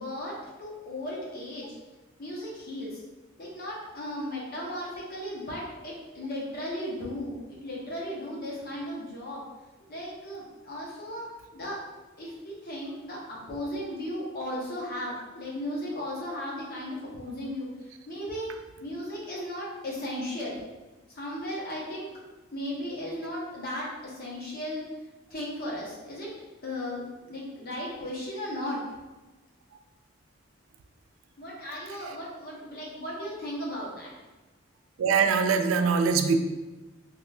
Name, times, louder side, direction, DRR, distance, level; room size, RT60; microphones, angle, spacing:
voice 1, 0.0-1.7 2.2-3.0 3.4-7.3 7.6-9.4 9.9-11.8 12.2-17.7 18.1-18.5 18.8-20.6 21.1-22.1 22.5-24.8 25.3-26.3 26.6-28.8 31.4-34.1, left 1 dB, 45° left, -4 dB, 0.9 m, -36 dB
voice 2, 31.7-32.2 35.0-36.4, right 5 dB, 80° right, 7 dB, 0.3 m, -24 dB
3.6 x 3.0 x 2.3 m, 1.2 s
head